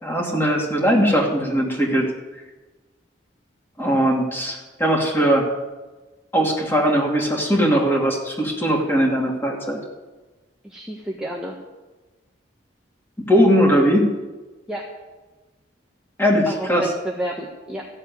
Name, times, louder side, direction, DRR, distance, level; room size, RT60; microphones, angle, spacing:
voice 1, 0.0-2.1 3.8-5.5 6.3-9.8 13.2-14.1 16.2-16.9, equal, 10° left, -1 dB, 2.6 m, -19 dB
voice 2, 10.6-11.6 14.7-14.8 16.5-17.9, right 1 dB, 5° right, -2 dB, 1.2 m, -30 dB
14.5 x 7.5 x 9.4 m, 1.2 s
head